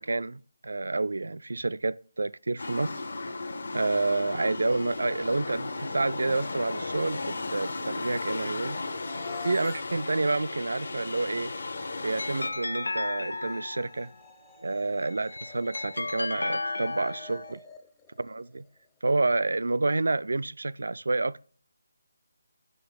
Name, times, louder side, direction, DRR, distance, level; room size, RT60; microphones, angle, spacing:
voice 1, 0.0-3.0 3.7-8.8 9.4-11.5 12.0-14.1 14.6-17.6 18.2-18.7 19.0-21.4, right 3 dB, 75° right, 0.3 m, -29 dB
sound 1, 2.6-12.5, left 3 dB, 70° left, 0.9 m, -35 dB
sound 2, 8.7-18.9, left 5 dB, 10° left, 0.3 m, -48 dB
sound 3, 11.7-14.1 15.1-17.5, left 2 dB, 90° left, 0.3 m, -34 dB
6.1 x 6.0 x 5.1 m
figure-of-eight pair, 170°, 0 cm